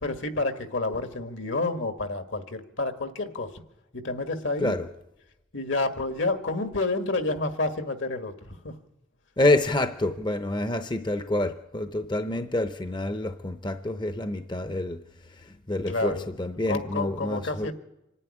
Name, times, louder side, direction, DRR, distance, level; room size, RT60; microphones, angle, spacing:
voice 1, 0.0-3.5 3.9-4.8 5.5-8.7 15.9-16.3 16.7-17.7, left 2 dB, 70° left, 1.8 m, -29 dB
voice 2, 9.4-15.0 15.4-17.7, left 1 dB, 25° left, 0.7 m, -27 dB
25.5 x 11.0 x 9.9 m
head